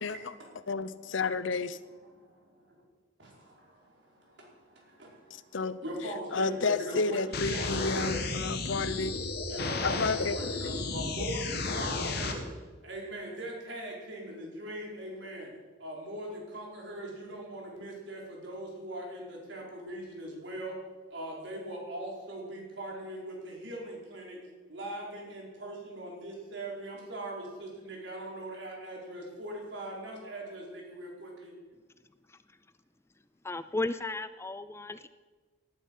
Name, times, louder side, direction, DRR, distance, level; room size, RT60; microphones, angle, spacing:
voice 1, 0.0-0.5 0.9-1.2 1.8-2.8 3.2-8.5 9.5-12.5 12.8-15.5 15.8-20.8 21.1-24.4 24.7-31.5, right 1 dB, 70° right, -2 dB, 5.0 m, -41 dB
voice 2, 0.7-1.8 5.5-5.8 6.3-9.1 9.8-10.4, left 4 dB, 85° left, 15 dB, 0.8 m, -31 dB
sound 1, 7.3-12.3, left 3 dB, 60° left, 1.9 m, -33 dB
voice 3, 33.4-35.1, left 2 dB, 15° left, 13 dB, 0.4 m, -34 dB
18.5 x 12.0 x 5.7 m, 1.4 s
head